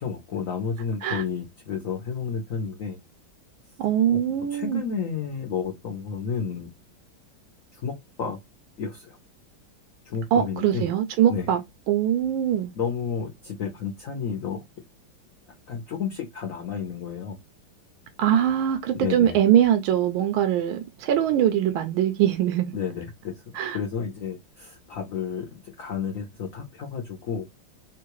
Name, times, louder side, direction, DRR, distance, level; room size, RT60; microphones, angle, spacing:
voice 1, 0.0-3.0 4.1-4.2 4.5-6.7 7.7-8.4 8.8-9.2 10.0-10.9 11.3-11.5 12.7-14.6 15.7-17.4 18.9-19.4 22.7-23.4 23.7-27.5, left 6 dB, 65° left, 0.8 m, -31 dB
voice 2, 3.8-4.8 10.3-11.6 11.9-12.7 18.2-22.7 23.5-23.8, right 10 dB, 80° right, 1.4 m, -22 dB
3.7 x 2.3 x 3.0 m
omnidirectional pair, 2.3 m